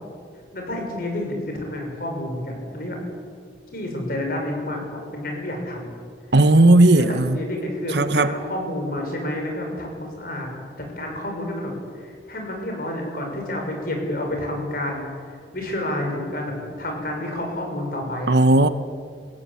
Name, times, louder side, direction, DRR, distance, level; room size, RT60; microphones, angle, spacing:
voice 1, 0.5-3.0 3.7-4.8 5.1-5.9 6.8-10.5 10.8-15.0 15.5-18.4, left 1 dB, 50° left, 6.5 m, -29 dB
voice 2, 6.3-7.4 7.9-8.3 18.3-18.7, right 2 dB, 65° right, 1.1 m, -15 dB
29.5 x 16.0 x 8.5 m
head